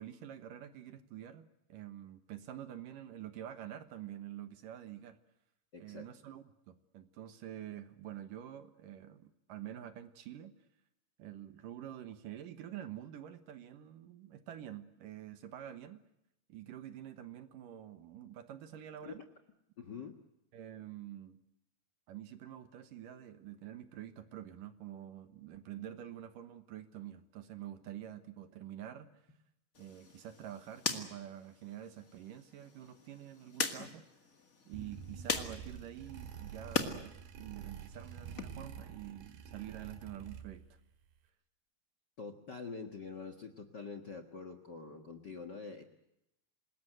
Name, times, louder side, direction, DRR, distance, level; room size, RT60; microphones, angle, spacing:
voice 1, 0.0-5.2 5.8-10.5 11.2-16.0 16.5-19.2 20.5-21.4 22.1-29.1 29.8-34.1 34.7-40.8, right 11 dB, 65° right, 11 dB, 2.6 m, -47 dB
voice 2, 5.7-6.1 19.0-19.1 19.8-20.1 42.2-45.8, left 5 dB, 65° left, 9 dB, 1.0 m, -45 dB
sound 1, 29.7-36.9 37.3-38.4, left 4 dB, 35° left, 1.4 m, -41 dB
sound 2, 34.7-40.8, right 8 dB, 85° right, 4.0 m, -48 dB
27.0 x 20.5 x 7.9 m, 0.83 s
omnidirectional pair, 4.6 m